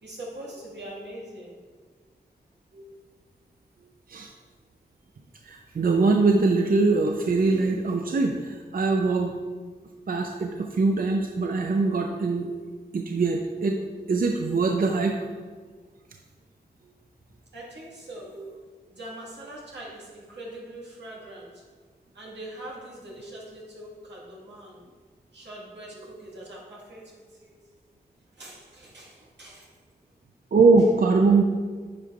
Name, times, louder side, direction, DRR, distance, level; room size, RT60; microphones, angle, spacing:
voice 1, 0.0-1.6 17.5-18.6 18.9-21.6 22.1-24.8 25.3-27.5 28.3-29.7, right 1 dB, 90° right, -5 dB, 1.7 m, -42 dB
voice 2, 5.4-9.3 10.1-12.6 12.9-13.8 14.1-15.2 18.4-18.5 30.5-31.4, right 3 dB, 55° right, 3 dB, 0.5 m, -22 dB
8.8 x 4.7 x 2.4 m, 1.5 s
cardioid pair, 50°, 17 cm